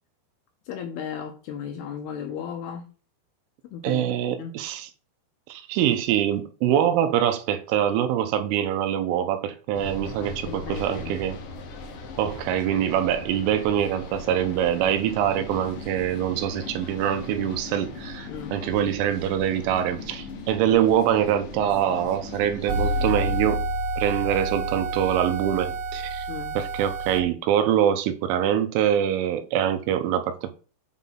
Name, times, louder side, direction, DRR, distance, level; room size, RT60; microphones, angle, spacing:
voice 1, 0.7-2.9 3.6-4.0 4.4-4.6 10.4-11.2 18.2-18.9 26.3-26.6, left 8 dB, 80° left, 2.4 m, -36 dB
voice 2, 3.8-4.9 5.5-11.4 12.2-23.7 24.0-26.3 26.6-30.5, right 10 dB, 90° right, 3.4 m, -24 dB
sound 1, 9.7-23.5, left 3 dB, 60° left, 2.4 m, -39 dB
sound 2, 22.7-27.2, right 2 dB, 75° right, 3.4 m, -28 dB
8.3 x 3.9 x 5.7 m
omnidirectional pair, 5.5 m